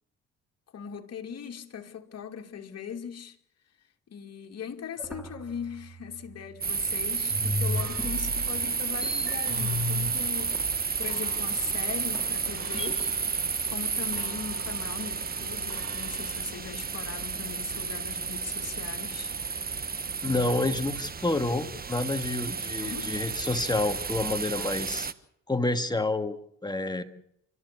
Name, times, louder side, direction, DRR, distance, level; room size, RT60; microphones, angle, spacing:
voice 1, 0.7-3.4 4.1-10.6 11.0-13.1 13.7-19.3 20.2-20.8 22.8-23.1, left 7 dB, 55° left, 2.6 m, -39 dB
sound 1, 5.0-6.9 7.3-13.1, left 1 dB, 5° right, 4.4 m, -36 dB
sound 2, 6.6-25.1, right 5 dB, 30° right, 1.3 m, -31 dB
Clock, 7.8-16.5, right 4 dB, 50° right, 4.8 m, -49 dB
voice 2, 20.2-25.1 25.5-27.0, left 2 dB, 15° left, 2.1 m, -29 dB
30.0 x 13.5 x 8.4 m
cardioid pair, 90°, 30 cm